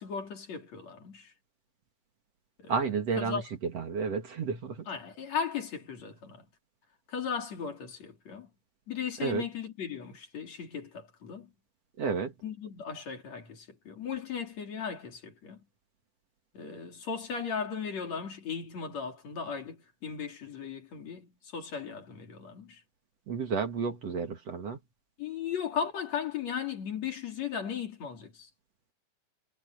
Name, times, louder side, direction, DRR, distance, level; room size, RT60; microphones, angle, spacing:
voice 1, 0.0-1.3 2.6-2.7 3.2-3.4 4.9-6.5 7.1-8.5 8.9-11.5 12.4-15.7 16.5-22.8 25.2-28.5, left 7 dB, 55° left, 4.2 m, -37 dB
voice 2, 2.7-4.9 9.2-9.4 12.0-12.3 23.3-24.8, right 5 dB, 50° right, 2.9 m, -31 dB
omnidirectional pair, 3.8 m